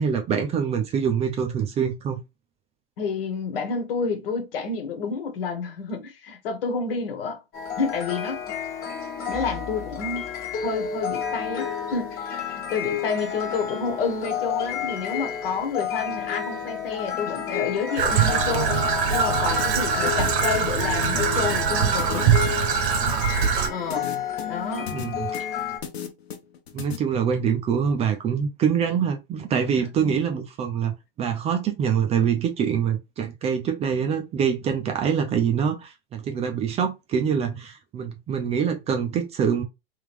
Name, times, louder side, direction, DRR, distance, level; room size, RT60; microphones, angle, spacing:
voice 1, 0.0-2.2 24.9-25.3 26.7-30.9 31.2-39.6, right 7 dB, 20° right, 0.5 m, -25 dB
voice 2, 3.0-7.4 7.8-8.4 9.3-10.3 10.6-18.8 19.1-22.4 23.7-24.9 30.0-30.2, left 5 dB, 60° left, 1.3 m, -29 dB
sound 1, 7.5-25.8, left 7 dB, 30° left, 1.3 m, -31 dB
Traffic noise roadway noise / Trickle dribble, 18.0-23.7, right 7 dB, 55° right, 1.1 m, -23 dB
sound 2, 19.6-27.0, left 8 dB, 80° left, 1.0 m, -35 dB
3.4 x 3.0 x 3.5 m
hypercardioid pair, 125°, 31 cm